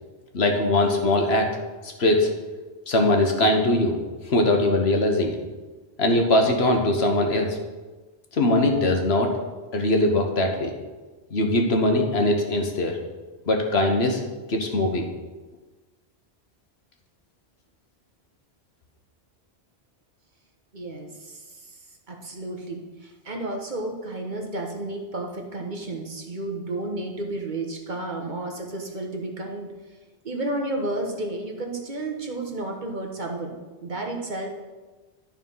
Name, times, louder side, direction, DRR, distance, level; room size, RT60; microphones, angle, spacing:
voice 1, 0.3-1.5 1.8-2.3 2.9-4.0 4.2-5.4 6.0-7.6 8.3-9.3 9.7-10.7 11.3-13.0 13.5-14.2 14.5-15.1, left 1 dB, 70° left, 3 dB, 1.4 m, -21 dB
voice 2, 20.7-21.8 22.1-29.7 30.2-33.5 33.8-34.5, right 2 dB, 45° right, 2 dB, 1.3 m, -32 dB
12.0 x 4.5 x 5.5 m, 1.3 s
omnidirectional pair, 1.1 m